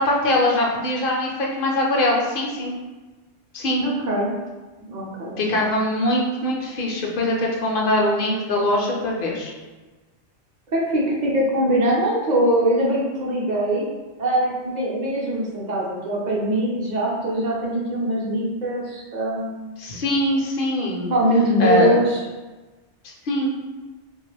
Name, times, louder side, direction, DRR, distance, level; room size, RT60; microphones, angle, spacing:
voice 1, 0.0-2.7 3.5-3.8 5.4-9.5 19.8-21.1 21.6-22.0 23.3-23.5, left 1 dB, 60° left, -2 dB, 0.7 m, -22 dB
voice 2, 3.8-4.3 4.9-5.4 10.7-13.8 14.2-19.8 21.1-22.2, right 1 dB, 50° right, -3 dB, 0.6 m, -22 dB
2.7 x 2.3 x 3.2 m, 1.2 s
omnidirectional pair, 1.2 m